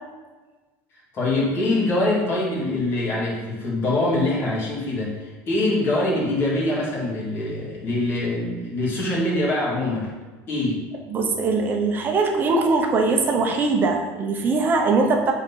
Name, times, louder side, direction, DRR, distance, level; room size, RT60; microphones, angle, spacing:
voice 1, 1.1-10.1 10.5-10.8, left 2 dB, 30° left, -4 dB, 2.4 m, -24 dB
voice 2, 11.1-15.3, right 3 dB, 25° right, 3 dB, 1.0 m, -21 dB
7.9 x 4.1 x 5.7 m, 1.3 s
cardioid pair, 165°, 7 cm